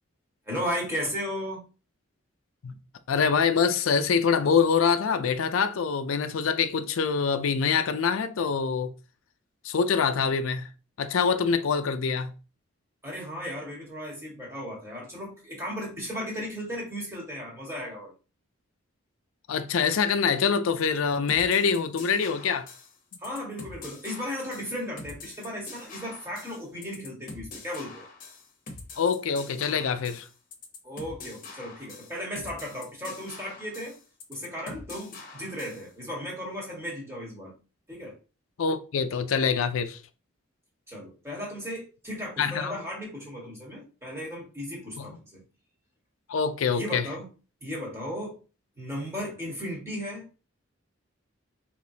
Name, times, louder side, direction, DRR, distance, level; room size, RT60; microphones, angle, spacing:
voice 1, 0.5-1.6 13.0-18.1 23.2-28.1 30.8-34.0 34.3-37.5 37.9-38.2 40.9-45.4 46.7-47.3 47.6-48.4 48.8-50.3, equal, 15° right, 1.5 m, -35 dB
voice 2, 3.1-8.9 9.6-10.7 11.0-12.3 19.5-22.7 29.0-30.3 38.6-40.0 42.4-42.8 45.0-45.1 46.3-47.1, left 6 dB, 80° left, 0.4 m, -25 dB
sound 1, 21.3-35.9, left 3 dB, 40° left, 1.0 m, -44 dB
4.9 x 3.0 x 2.7 m
head